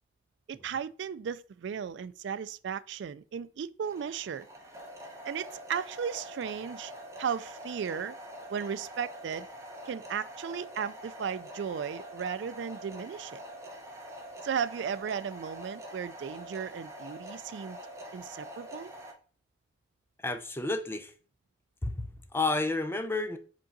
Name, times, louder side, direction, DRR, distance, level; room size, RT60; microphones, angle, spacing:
voice 1, 0.5-4.5 5.2-6.9 7.2-8.1 8.5-9.5 9.9-13.4 14.4-17.8 18.1-18.9, right 7 dB, 70° right, 0.3 m, -35 dB
sound 1, 3.8-19.1, equal, 15° right, 0.9 m, -45 dB
voice 2, 20.2-21.1 21.8-23.4, left 2 dB, 10° left, 0.6 m, -31 dB
5.1 x 3.7 x 5.2 m
head